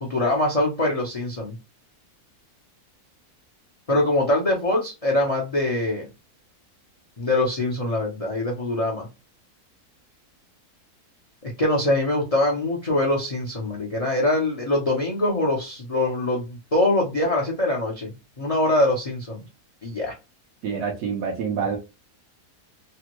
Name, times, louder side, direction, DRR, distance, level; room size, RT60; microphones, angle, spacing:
voice 1, 0.0-1.6 3.9-6.1 7.2-9.1 11.4-19.4 19.8-20.1, left 1 dB, 40° left, 0.5 m, -23 dB
voice 2, 20.6-21.8, right 6 dB, 80° right, 1.3 m, -27 dB
3.4 x 2.2 x 2.9 m
omnidirectional pair, 1.7 m